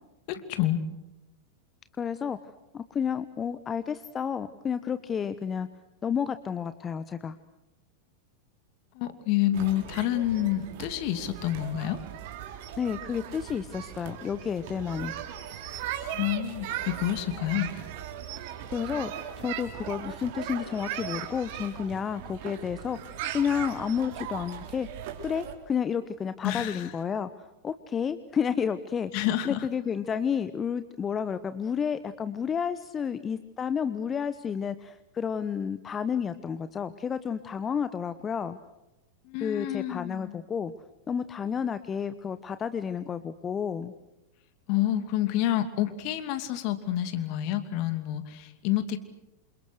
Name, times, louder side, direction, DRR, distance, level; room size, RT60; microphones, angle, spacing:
voice 1, 0.3-0.8 8.9-12.0 16.1-17.7 26.4-26.9 29.1-29.7 39.3-40.4 44.7-49.0, left 13 dB, 45° left, 10 dB, 2.8 m, -28 dB
voice 2, 2.0-2.4 2.7-5.7 6.0-7.4 12.8-15.1 18.3-18.4 18.7-24.9 25.2-38.6 39.4-40.7 41.1-43.9, left 7 dB, 20° left, 13 dB, 1.1 m, -31 dB
sound 1, 9.5-25.5, right 10 dB, 50° right, 3.8 m, -38 dB
28.0 x 28.0 x 6.5 m, 0.96 s
figure-of-eight pair, 90°, 0 cm